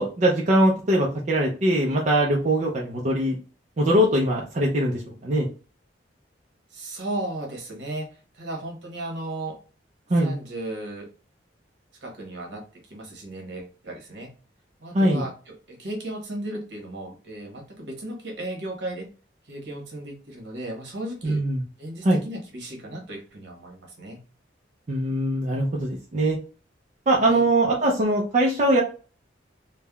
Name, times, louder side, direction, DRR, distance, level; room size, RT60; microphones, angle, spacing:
voice 1, 0.0-3.4 3.8-5.5 10.1-10.3 14.9-15.2 21.2-21.6 22.0-22.2 24.9-26.4 27.1-28.8, right 1 dB, 40° right, -2 dB, 0.4 m, -22 dB
voice 2, 6.7-9.6 10.2-11.1 12.0-14.3 14.8-19.1 19.5-21.4 21.8-24.2 27.2-27.5, right 1 dB, 65° right, 0 dB, 1.0 m, -35 dB
3.3 x 2.1 x 2.3 m, 0.37 s
head